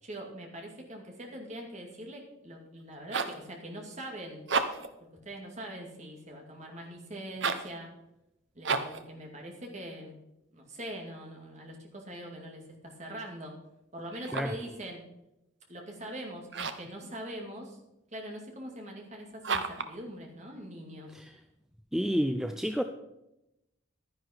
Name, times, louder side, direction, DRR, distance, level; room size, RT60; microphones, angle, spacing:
voice 1, 0.0-4.5 5.2-7.9 8.5-10.2 10.5-13.5 13.9-15.0 15.7-17.8 18.1-21.1, right 1 dB, 35° right, 1 dB, 2.3 m, -43 dB
sound 1, 2.8-3.5 4.4-5.0 7.3-7.8 8.6-9.1 14.1-14.7 16.5-16.9 19.4-20.0, right 4 dB, 60° right, 0.9 m, -32 dB
voice 2, 21.1-21.4 21.9-22.8, equal, ahead, 7 dB, 0.4 m, -30 dB
11.5 x 10.5 x 4.5 m, 0.89 s
head